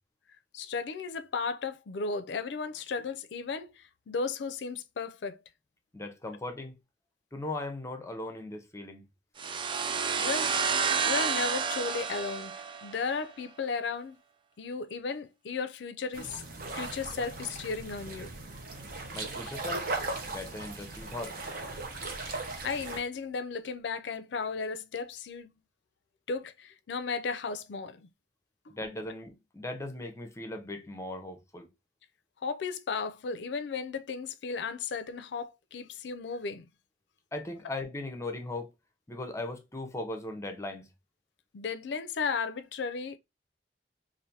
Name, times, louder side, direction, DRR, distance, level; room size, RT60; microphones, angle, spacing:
voice 1, 0.5-5.4 10.2-10.5 11.0-12.5 12.8-14.2 14.6-16.5 16.7-18.3 22.4-25.5 26.3-28.1 32.4-36.7 41.5-43.2, left 4 dB, 70° left, 0.4 m, -35 dB
voice 2, 5.9-6.7 7.3-9.0 19.1-19.9 20.3-21.3 28.7-31.7 37.3-38.7 39.1-40.9, left 2 dB, 15° left, 0.6 m, -38 dB
sound 1, 9.4-13.1, right 6 dB, 30° right, 0.3 m, -30 dB
sound 2, 16.1-23.0, right 2 dB, 55° right, 0.8 m, -38 dB
3.3 x 2.5 x 2.7 m
head